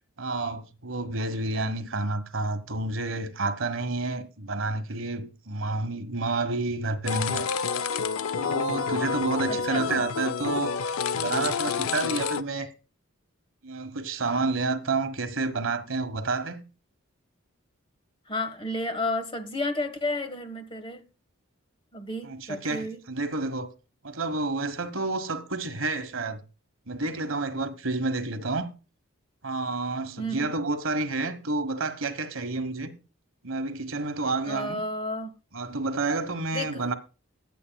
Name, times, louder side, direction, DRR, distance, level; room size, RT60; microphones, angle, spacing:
voice 1, 0.2-7.5 8.4-10.8 11.1-12.7 13.6-16.6 22.2-23.7 24.0-26.4 26.9-28.7 29.4-32.9 33.4-34.8 35.5-36.9, right 3 dB, 65° right, 1.4 m, -29 dB
sound 1, 7.1-12.4, left 6 dB, 80° left, 0.5 m, -29 dB
voice 2, 9.5-10.1 18.3-21.0 21.9-23.0 30.2-30.6 34.4-35.3 36.5-36.9, left 1 dB, 25° left, 1.4 m, -32 dB
21.5 x 8.4 x 2.3 m
head